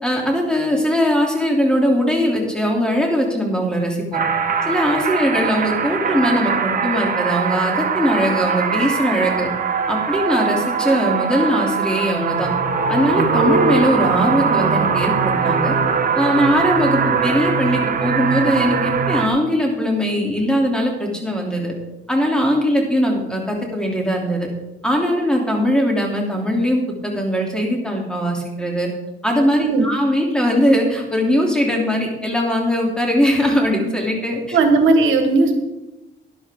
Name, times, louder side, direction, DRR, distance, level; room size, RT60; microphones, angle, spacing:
voice 1, 0.0-4.2 4.6-9.5 9.9-12.5 12.9-15.7 16.1-21.7 22.1-24.5 24.8-28.9 29.2-34.6, equal, 5° left, 0 dB, 3.1 m, -20 dB
sound 1, 4.1-19.3, right 5 dB, 45° right, 1.3 m, -21 dB
voice 2, 34.5-35.5, right 3 dB, 80° right, 6 dB, 1.5 m, -16 dB
12.5 x 11.0 x 3.7 m, 1.0 s
cardioid pair, 90°, 20 cm